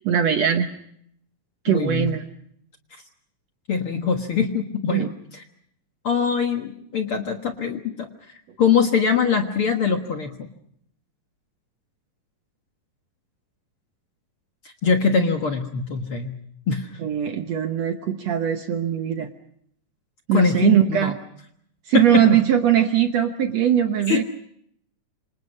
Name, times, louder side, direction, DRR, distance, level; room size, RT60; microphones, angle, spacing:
voice 1, 0.1-0.7 1.7-2.3 4.9-5.1 17.0-19.3 20.3-21.1 21.9-24.2, right 10 dB, 65° right, 7 dB, 1.8 m, -20 dB
voice 2, 1.7-2.1 2.9-3.0 3.7-5.4 6.0-8.1 8.6-10.5 14.7-16.3 16.7-16.9 20.3-21.1 21.9-22.4 24.1-24.2, left 6 dB, 50° left, 5 dB, 1.7 m, -23 dB
27.5 x 26.0 x 5.4 m, 0.69 s
omnidirectional pair, 4.1 m